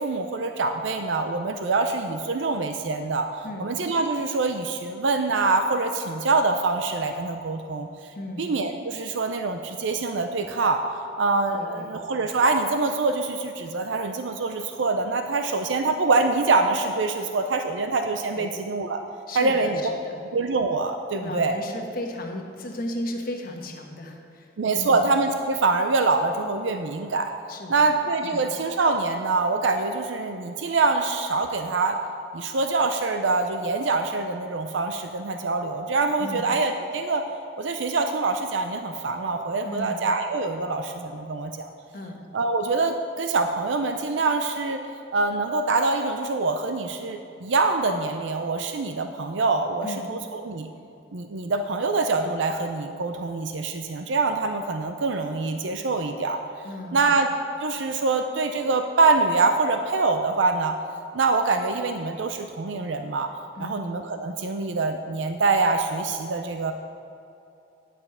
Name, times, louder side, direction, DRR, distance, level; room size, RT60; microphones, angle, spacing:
voice 1, 0.0-3.3 3.6-7.9 8.4-10.8 11.2-19.0 19.4-19.8 20.3-21.6 24.6-27.3 27.7-32.0 32.3-37.2 37.6-41.7 42.3-44.8 45.1-50.7 51.1-56.4 56.9-57.3 57.6-60.8 61.1-63.3 63.6-66.7, right 3 dB, 85° right, 6 dB, 0.5 m, -25 dB
voice 2, 8.1-8.5 11.5-11.9 18.3-18.6 19.3-20.2 21.2-25.0 27.5-27.9 28.2-28.5 36.2-36.5 39.6-40.0 41.9-42.2 49.8-50.1 56.6-57.1 63.6-63.8, left 1 dB, 50° left, 2 dB, 1.2 m, -35 dB
10.0 x 6.7 x 5.6 m, 2.7 s
head